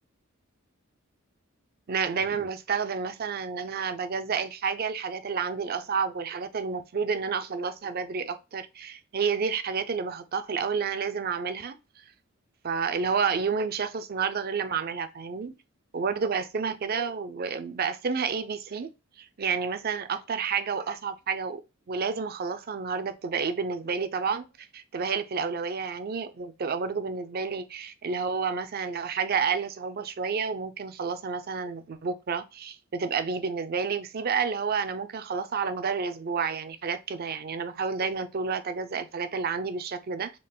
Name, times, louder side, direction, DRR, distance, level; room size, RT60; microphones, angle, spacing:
voice 1, 1.9-11.8 12.6-15.5 15.9-18.9 19.2-21.6 21.9-24.4 24.7-40.3, right 5 dB, 50° right, 0.5 m, -30 dB
3.8 x 2.4 x 3.6 m
head